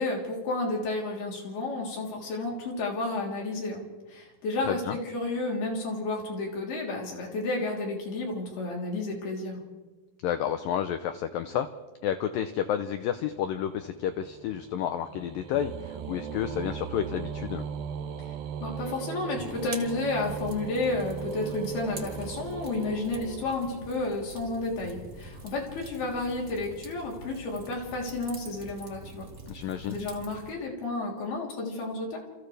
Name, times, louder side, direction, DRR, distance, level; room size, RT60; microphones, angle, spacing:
voice 1, 0.0-9.6 18.6-29.3 29.9-32.2, left 2 dB, 65° left, -1 dB, 5.4 m, -31 dB
voice 2, 4.7-5.0 10.2-11.7 12.0-17.6 29.5-30.0, left 9 dB, 80° left, 9 dB, 2.0 m, -30 dB
sound 1, 13.2-24.2, right 7 dB, 75° right, 2.4 m, -39 dB
Fire, 19.4-30.5, right 2 dB, 35° right, 1.0 m, -46 dB
29.0 x 28.5 x 3.4 m, 1.2 s
omnidirectional pair, 5.0 m